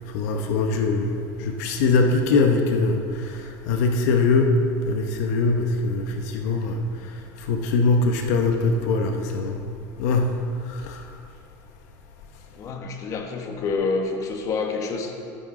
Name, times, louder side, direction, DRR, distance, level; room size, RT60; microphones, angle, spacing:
voice 1, 0.1-4.5 4.9-9.6 10.0-10.4 10.7-11.0, left 3 dB, 80° left, 4 dB, 1.0 m, -22 dB
voice 2, 12.5-15.1, left 4 dB, 40° left, 3 dB, 1.3 m, -27 dB
12.5 x 11.0 x 3.8 m, 2.5 s
supercardioid pair, 140°, 9 cm